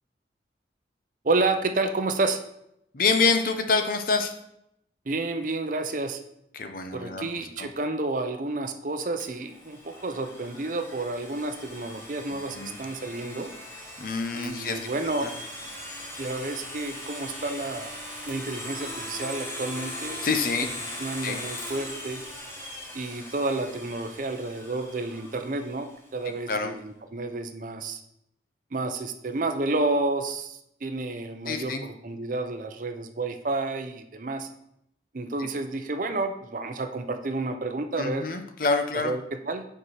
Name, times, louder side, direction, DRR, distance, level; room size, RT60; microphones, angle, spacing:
voice 1, 1.2-2.4 5.1-6.2 6.9-13.5 14.3-15.5 16.2-17.9 18.3-20.2 21.0-22.2 22.9-28.0 28.7-34.5 35.1-38.3 39.0-39.7, right 2 dB, 45° right, 7 dB, 0.6 m, -30 dB
voice 2, 2.9-4.3 6.5-7.7 12.3-12.8 14.0-14.9 15.2-15.3 20.2-20.7 21.2-21.4 26.5-26.7 31.5-31.8 35.4-35.5 38.0-39.1, left 4 dB, 50° left, 6 dB, 0.7 m, -27 dB
Domestic sounds home sounds, 9.2-26.0, left 1 dB, 15° left, 1.3 m, -40 dB
5.2 x 4.7 x 5.7 m, 0.78 s
head